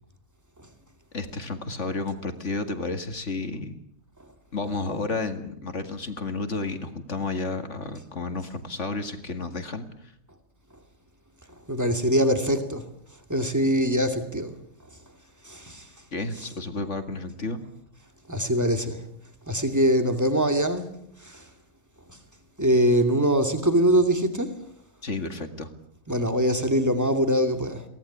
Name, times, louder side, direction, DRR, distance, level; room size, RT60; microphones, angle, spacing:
voice 1, 1.1-3.8 4.5-10.1 16.1-17.6 25.0-25.7, left 3 dB, 50° left, 2.3 m, -31 dB
voice 2, 11.5-12.8 13.3-14.5 15.4-15.9 18.3-19.0 19.5-20.9 21.2-21.5 22.1-22.2 22.6-24.5 26.1-27.8, equal, 10° right, 2.4 m, -23 dB
23.5 x 18.0 x 10.0 m
omnidirectional pair, 1.7 m